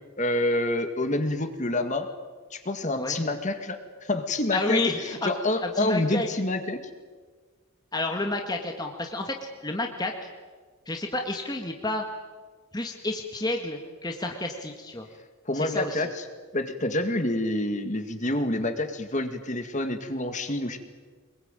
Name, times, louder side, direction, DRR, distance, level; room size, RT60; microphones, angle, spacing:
voice 1, 0.2-2.1 2.5-4.8 5.2-6.8 15.5-16.1 16.5-20.8, left 1 dB, 35° left, 8 dB, 1.9 m, -27 dB
voice 2, 4.5-5.3 5.6-6.3 7.9-9.4 9.6-10.1 10.8-12.0 12.7-15.1 15.5-16.1, left 2 dB, 20° left, 3 dB, 1.7 m, -30 dB
24.5 x 21.5 x 9.1 m, 1.4 s
head